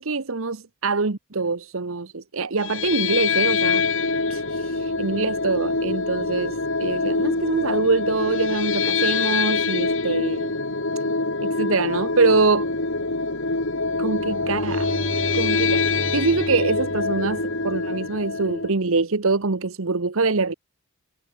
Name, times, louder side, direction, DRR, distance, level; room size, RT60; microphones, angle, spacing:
voice 1, 0.0-3.8 4.3-10.5 11.4-12.7 14.0-14.9 15.3-20.5, right 3 dB, 70° right, 1.1 m, -24 dB
sound 1, 2.6-18.7, left 4 dB, 65° left, 3.7 m, -25 dB
Bowed string instrument, 14.0-18.1, equal, 25° right, 4.2 m, -35 dB
head